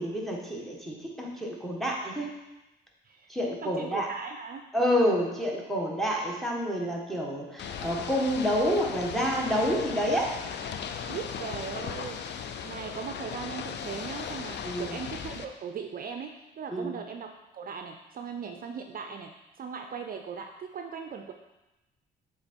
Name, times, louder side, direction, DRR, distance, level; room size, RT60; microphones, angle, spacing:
voice 1, 0.0-2.3 3.3-4.1 4.7-10.4 14.6-15.0 16.7-16.9, equal, ahead, -2 dB, 1.4 m, -28 dB
voice 2, 3.6-4.6 11.1-19.3 19.6-21.3, right 6 dB, 45° right, 5 dB, 0.5 m, -39 dB
Ocean / Boat Water vehicle, 7.6-15.4, left 7 dB, 60° left, 0.5 m, -37 dB
7.3 x 3.7 x 4.4 m, 1.0 s
cardioid pair, 90°, 20 cm